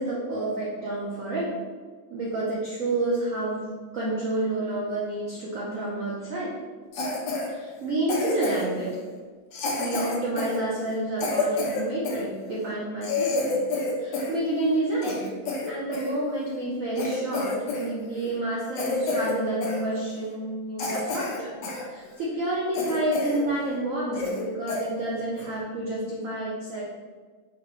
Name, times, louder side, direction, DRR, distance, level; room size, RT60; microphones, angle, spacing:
voice 1, 0.0-1.5 2.1-6.5 7.5-9.0 9.8-13.6 14.0-15.3 15.7-21.5 21.9-26.8, right 1 dB, 85° right, -5 dB, 0.7 m, -29 dB
Cough, 6.9-7.5 8.1-8.8 9.5-12.2 12.7-12.8 13.0-14.4 14.7-16.1 16.6-16.7 17.0-17.9 18.1-18.4 18.7-19.4 19.6-19.8 20.3-20.4 20.8-21.8 22.2-22.3 22.7-23.4 23.7-23.8 24.1-24.4 24.7-24.8 25.4-25.6, left 3 dB, 65° left, 1.3 m, -29 dB
4.7 x 3.0 x 3.0 m, 1.5 s
omnidirectional pair, 2.3 m